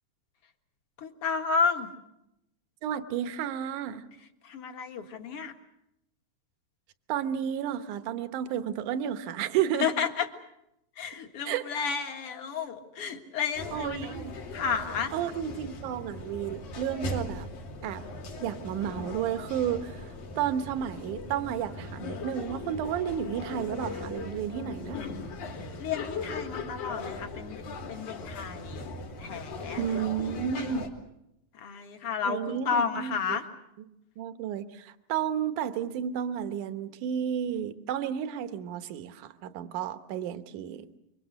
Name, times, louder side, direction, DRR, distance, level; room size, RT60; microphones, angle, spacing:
voice 1, 1.0-1.9 4.4-5.5 9.8-10.3 11.0-14.1 14.5-15.1 25.5-27.6 27.9-29.8 30.2-30.8 31.5-33.4, left 6 dB, 50° left, 5 dB, 2.3 m, -32 dB
voice 2, 2.8-4.0 7.1-9.9 11.4-11.7 13.7-14.3 15.1-17.5 17.8-18.0 18.4-25.0 29.8-30.9 32.2-33.4 34.2-40.9, right 9 dB, 70° right, 10 dB, 2.5 m, -32 dB
sound 1, 13.5-30.9, left 3 dB, 80° left, 4.5 m, -39 dB
27.5 x 24.5 x 6.5 m, 0.84 s
omnidirectional pair, 4.0 m